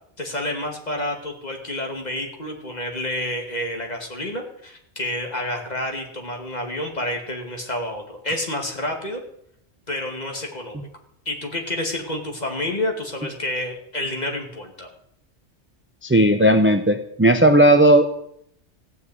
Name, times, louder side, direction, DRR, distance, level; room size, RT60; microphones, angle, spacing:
voice 1, 0.2-9.2 9.9-10.9 11.3-14.9, left 1 dB, 35° left, 2 dB, 2.4 m, -29 dB
voice 2, 16.0-18.1, right 1 dB, 15° right, 8 dB, 0.6 m, -15 dB
15.5 x 6.4 x 9.2 m, 0.72 s
omnidirectional pair, 1.3 m